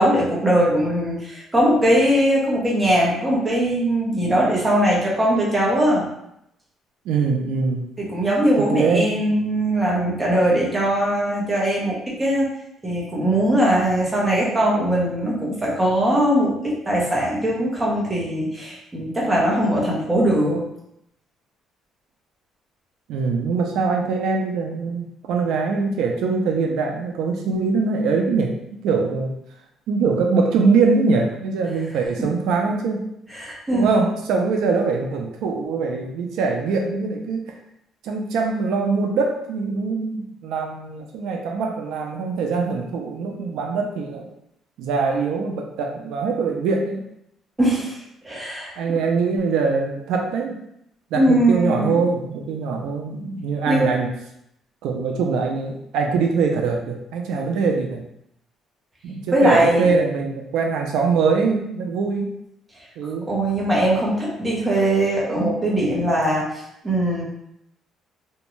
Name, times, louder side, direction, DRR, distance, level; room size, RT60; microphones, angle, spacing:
voice 1, 0.0-6.0 8.0-12.5 12.8-20.6 33.3-33.9 47.6-48.0 48.2-48.7 51.1-52.0 53.7-53.9 59.3-59.9 63.3-67.2, right 1 dB, 15° right, -5 dB, 0.7 m, -20 dB
voice 2, 7.1-7.9 8.6-9.1 23.1-29.3 29.9-33.1 33.7-37.5 38.0-44.3 44.8-47.0 48.8-50.6 51.1-54.1 54.8-58.0 59.0-62.4 63.0-63.3, right 4 dB, 80° right, 2 dB, 0.3 m, -23 dB
2.5 x 2.2 x 3.0 m, 0.78 s
cardioid pair, 155°, 0 cm